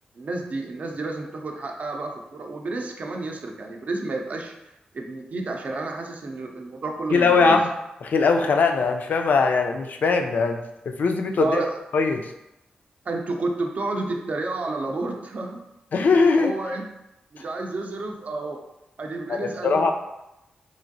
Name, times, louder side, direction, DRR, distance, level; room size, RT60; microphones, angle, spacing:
voice 1, 0.2-4.5 4.9-7.6 11.4-11.8 13.1-15.6 16.4-16.8 17.3-18.6 19.0-19.9, right 2 dB, 55° right, 2 dB, 0.5 m, -30 dB
voice 2, 7.1-7.7 8.0-10.6 10.8-11.6 11.9-12.3 15.9-16.5 17.4-17.5 19.3-19.9, left 4 dB, 70° left, 4 dB, 0.3 m, -21 dB
3.1 x 2.5 x 2.6 m, 0.91 s
cardioid pair, 65°, 3 cm